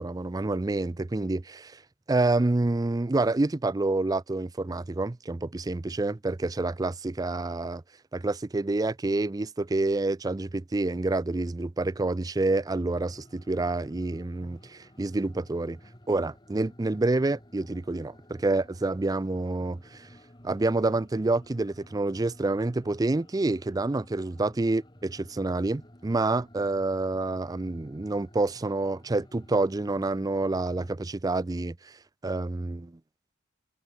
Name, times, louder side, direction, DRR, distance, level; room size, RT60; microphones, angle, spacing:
voice 1, 0.0-1.8 2.1-7.8 8.1-15.8 16.1-20.1 20.4-33.0, right 2 dB, 20° right, 0.4 m, -28 dB
sound 1, 12.9-30.9, left 1 dB, 20° left, 3.7 m, -53 dB
head